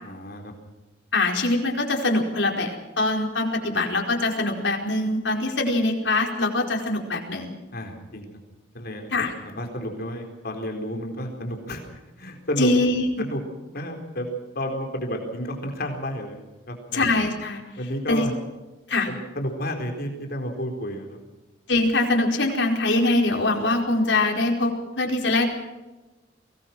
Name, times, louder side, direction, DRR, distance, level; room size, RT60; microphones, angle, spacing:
voice 1, 0.0-0.5 7.7-8.3 8.7-12.7 13.2-13.4 13.7-14.3 14.5-16.4 16.7-17.0 17.8-18.3 19.1-21.2, equal, 60° left, 3 dB, 4.2 m, -31 dB
voice 2, 1.1-7.5 9.1-9.3 12.6-13.0 16.9-17.6 18.1-18.3 18.9-19.1 21.7-25.5, left 2 dB, 85° left, 1 dB, 4.8 m, -23 dB
23.5 x 19.0 x 6.1 m, 1.1 s
head